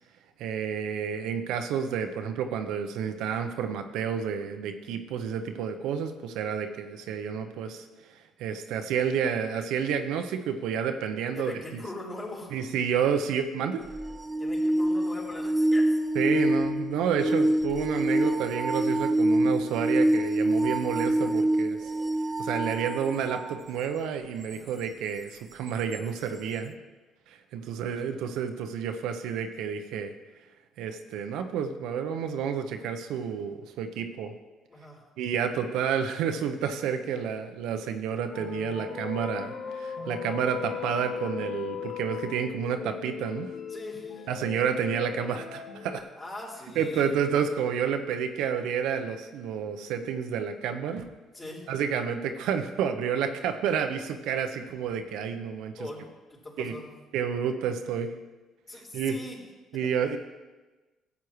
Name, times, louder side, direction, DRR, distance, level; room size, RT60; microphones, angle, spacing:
voice 1, 0.4-11.8 12.5-13.8 16.1-21.9 22.4-26.7 27.3-30.1 30.8-34.3 35.2-43.5 44.3-46.1 46.8-51.1 51.7-55.7 56.6-56.7 57.1-58.1 58.9-59.2 59.7-60.2, right 7 dB, 75° right, 7 dB, 0.7 m, -30 dB
voice 2, 11.3-12.5 14.4-16.0 24.5-24.7 27.7-28.2 34.7-35.1 43.7-44.5 46.1-47.1 51.3-51.7 55.8-56.9 58.7-59.4, left 2 dB, 30° left, -3 dB, 3.9 m, -41 dB
sound 1, 13.8-23.6 25.9-26.0, right 1 dB, 25° right, 0.6 m, -26 dB
sound 2, 38.3-46.0, left 8 dB, 60° left, 0.9 m, -37 dB
14.0 x 8.1 x 3.1 m, 1.2 s
hypercardioid pair, 55°, 0 cm